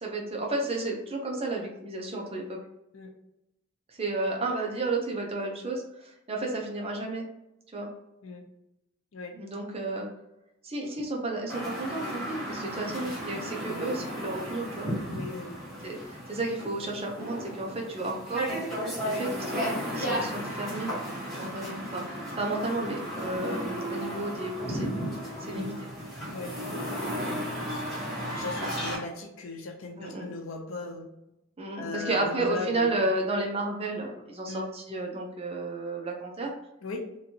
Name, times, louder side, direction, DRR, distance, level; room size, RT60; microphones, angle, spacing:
voice 1, 0.0-2.6 4.0-7.2 7.7-7.9 9.3-10.1 10.6-14.9 15.8-18.6 19.0-20.9 21.4-24.9 25.4-25.7 26.4-26.5 30.0-30.3 31.6-36.5, right 2 dB, 30° right, 0 dB, 0.7 m, -32 dB
sound 1, 11.5-29.0, equal, ahead, 1.5 m, -34 dB
voice 2, 15.1-15.6 19.0-19.2 25.4-25.7 26.3-26.5 27.2-31.1 31.8-32.9 34.5-34.7 36.8-37.0, left 3 dB, 90° left, 3 dB, 0.6 m, -38 dB
3.0 x 2.6 x 2.8 m, 0.89 s
head